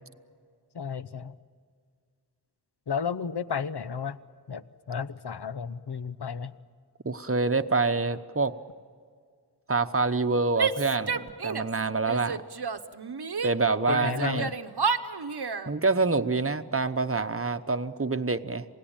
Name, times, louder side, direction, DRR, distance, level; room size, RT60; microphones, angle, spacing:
voice 1, 0.7-1.3 2.9-4.2 4.5-6.5 13.9-14.6, left 6 dB, 75° left, 14 dB, 0.8 m, -32 dB
voice 2, 7.0-8.5 9.7-12.4 13.4-14.5 15.7-18.7, right 3 dB, 35° right, 9 dB, 0.9 m, -26 dB
Female speech woman speaking / Yell, 10.6-11.8 12.1-13.5 13.9-15.7, right 5 dB, 70° right, 0.9 m, -31 dB
27.5 x 18.0 x 8.9 m, 2.1 s
wide cardioid pair, 40°, 40 cm